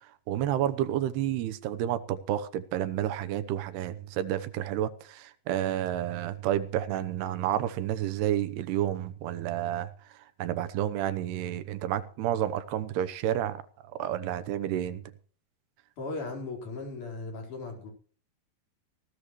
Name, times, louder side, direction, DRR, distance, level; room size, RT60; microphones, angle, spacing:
voice 1, 0.3-9.9 10.4-13.6 14.0-15.0, right 11 dB, 85° right, 3.0 m, -30 dB
voice 2, 16.0-17.9, left 3 dB, 50° left, 5.7 m, -37 dB
19.0 x 17.0 x 3.1 m
omnidirectional pair, 4.7 m